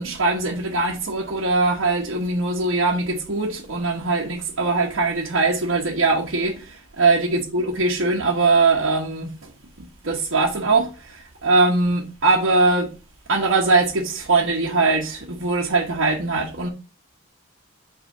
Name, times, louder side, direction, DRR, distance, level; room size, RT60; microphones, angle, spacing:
voice 1, 0.0-9.3 9.8-12.9 13.3-16.7, right 3 dB, 70° right, 1.3 m, -21 dB
5.6 x 4.7 x 5.6 m
head